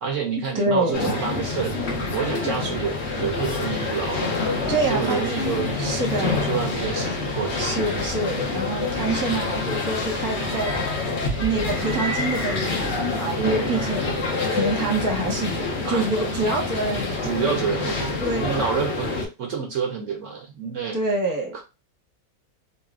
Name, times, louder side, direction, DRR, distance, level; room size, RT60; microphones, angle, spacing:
voice 1, 0.0-1.7 2.1-4.4 4.9-7.8 13.4-13.8 15.8-16.1 17.2-19.1 19.4-21.0 21.5-21.6, right 6 dB, 65° right, 3 dB, 0.9 m, -28 dB
voice 2, 0.5-1.1 4.7-6.4 7.6-10.7 11.4-14.2 14.5-17.3 18.2-18.8 20.9-21.6, right 2 dB, 15° right, 0 dB, 0.8 m, -26 dB
sound 1, 0.9-19.3, left 3 dB, 55° left, 1.0 m, -27 dB
4.0 x 2.2 x 2.4 m, 0.27 s
omnidirectional pair, 1.5 m